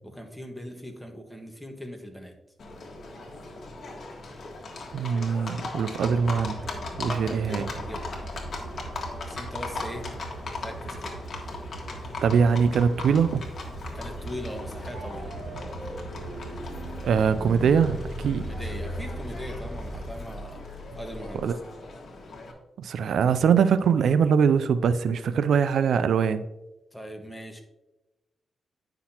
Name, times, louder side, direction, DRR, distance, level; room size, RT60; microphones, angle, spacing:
voice 1, 0.0-2.3 6.0-6.3 7.1-8.2 9.2-10.1 10.6-11.2 13.9-15.3 18.4-20.6 20.9-21.5 26.9-27.6, equal, ahead, 3 dB, 1.4 m, -40 dB
Livestock farm animals working animals, 2.6-22.5, left 3 dB, 55° left, 1.6 m, -38 dB
voice 2, 4.9-6.5 7.0-7.7 12.2-13.4 17.0-18.5 21.4-21.6 22.8-26.5, right 6 dB, 80° right, 13 dB, 0.3 m, -22 dB
sound 1, 6.0-20.1, right 2 dB, 20° right, 2.2 m, -41 dB
sound 2, 14.9-21.6, right 1 dB, 60° right, 2.6 m, -41 dB
9.7 x 5.8 x 2.9 m, 1.0 s
cardioid pair, 85°, 0 cm